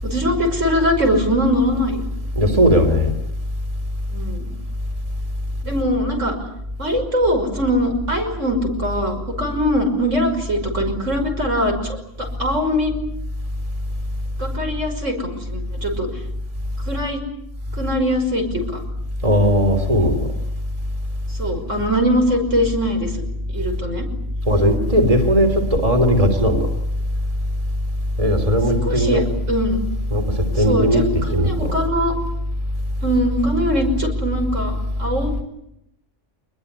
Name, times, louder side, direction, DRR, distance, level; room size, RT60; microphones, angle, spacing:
voice 1, 0.0-2.0 4.1-4.4 5.6-6.3 6.8-12.9 14.4-16.1 16.9-17.2 17.7-18.8 21.3-23.1 23.5-24.1 28.8-29.9 30.5-32.1 33.0-35.4, equal, 75° right, 4 dB, 6.2 m, -22 dB
voice 2, 2.3-3.1 19.2-20.3 24.5-26.7 28.2-29.2 30.1-31.8, equal, 25° right, 5 dB, 3.3 m, -17 dB
25.5 x 21.0 x 9.9 m, 0.80 s
omnidirectional pair, 1.3 m